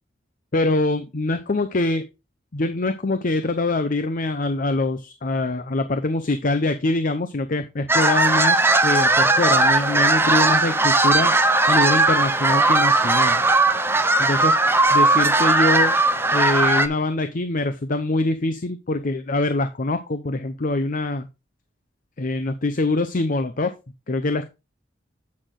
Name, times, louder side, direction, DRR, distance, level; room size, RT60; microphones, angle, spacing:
voice 1, 0.5-2.1 2.5-11.3 11.7-13.4 14.2-14.6 14.9-15.9 16.3-21.3 22.2-23.7 24.1-24.5, left 2 dB, 50° left, 9 dB, 0.8 m, -24 dB
sound 1, 7.9-16.9, right 2 dB, 15° right, 0.7 m, -18 dB
8.5 x 6.4 x 3.8 m, 0.27 s
head